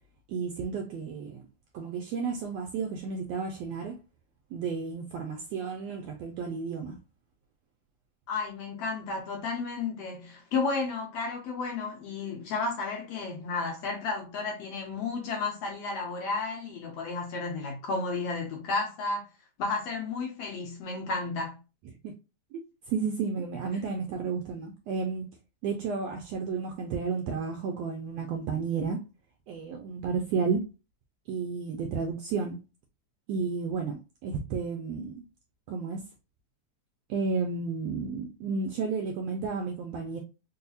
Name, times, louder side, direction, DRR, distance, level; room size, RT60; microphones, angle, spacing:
voice 1, 0.3-1.4 1.7-4.0 4.5-7.0 22.0-22.1 22.5-25.4 25.6-29.0 29.5-30.6 31.3-32.6 33.3-35.2 35.7-36.0 37.1-40.2, right 5 dB, 85° right, 1.5 m, -32 dB
voice 2, 8.3-19.3 19.6-21.5, left 4 dB, 70° left, 1.6 m, -32 dB
4.7 x 2.1 x 2.6 m
omnidirectional pair, 3.4 m